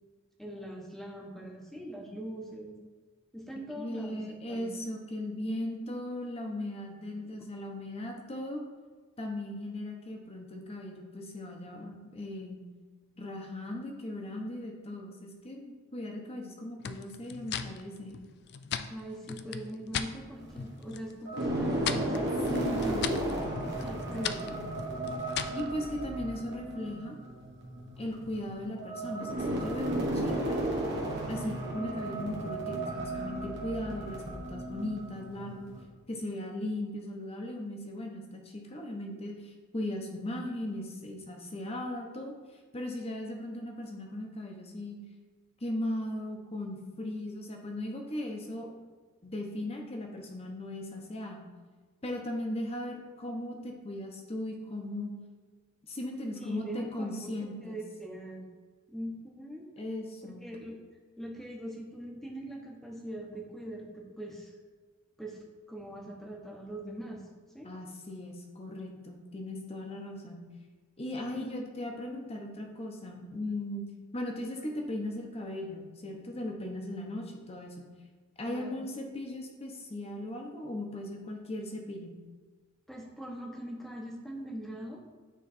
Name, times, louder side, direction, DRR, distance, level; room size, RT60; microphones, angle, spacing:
voice 1, 0.4-2.8 3.3-4.7 7.3-7.4 18.9-22.9 23.7-24.6 56.3-57.3 57.6-58.5 58.9-59.6 60.2-60.8 61.2-64.5 65.2-67.2 67.5-67.7 71.3-71.7 78.5-78.9 82.9-85.0, right 1 dB, ahead, 0 dB, 0.9 m, -42 dB
voice 2, 3.8-8.6 9.2-12.6 13.2-18.2 22.5-23.2 25.5-27.2 28.0-30.6 31.3-35.7 36.1-42.3 42.7-45.0 45.6-48.7 49.2-51.5 52.0-55.1 55.9-57.8 59.8-60.5 67.6-70.5 71.0-73.8 74.1-77.9 78.4-82.2, left 1 dB, 30° left, 2 dB, 0.9 m, -38 dB
sound 1, 16.8-20.1 20.5-21.1 21.4-25.7, left 8 dB, 50° left, 0.3 m, -38 dB
sound 2, 19.9-20.7 21.2-35.8, right 1 dB, 55° right, 1.4 m, -34 dB
9.2 x 3.3 x 4.2 m, 1.5 s
head